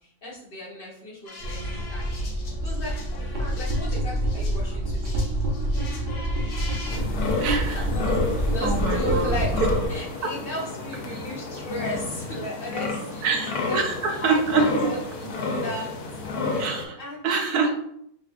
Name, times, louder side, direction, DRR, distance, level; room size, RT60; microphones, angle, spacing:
voice 1, 0.0-2.2 2.6-5.2 5.6-9.5 9.9-13.8 14.2-15.9 16.5-17.3 17.6-17.7, left 1 dB, 40° left, -4 dB, 1.2 m, -35 dB
sound 1, 1.3-4.6 4.9-7.0, left 2 dB, 60° left, 1.1 m, -43 dB
Drain Gurgle, 1.4-9.9, right 1 dB, 55° right, 1.2 m, -27 dB
sound 2, 6.9-16.9, left 3 dB, 85° left, 1.2 m, -30 dB
voice 2, 7.4-7.8 8.6-9.4 13.2-14.7 16.6-17.0 17.2-17.7, right 4 dB, 85° right, 3 dB, 1.2 m, -25 dB
4.3 x 3.4 x 2.4 m, 0.72 s
omnidirectional pair, 1.6 m